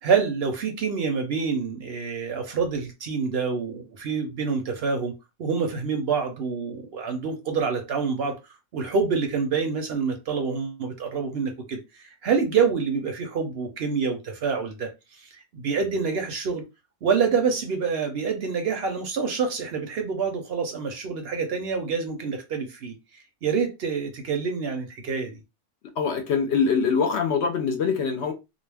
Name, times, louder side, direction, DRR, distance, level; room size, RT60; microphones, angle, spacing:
voice 1, 0.0-5.1 5.4-8.4 8.7-14.9 15.2-16.6 17.0-25.4, right 5 dB, 60° right, 0.7 m, -27 dB
voice 2, 26.0-28.3, left 5 dB, 65° left, 0.8 m, -23 dB
2.3 x 2.0 x 3.3 m
omnidirectional pair, 1.3 m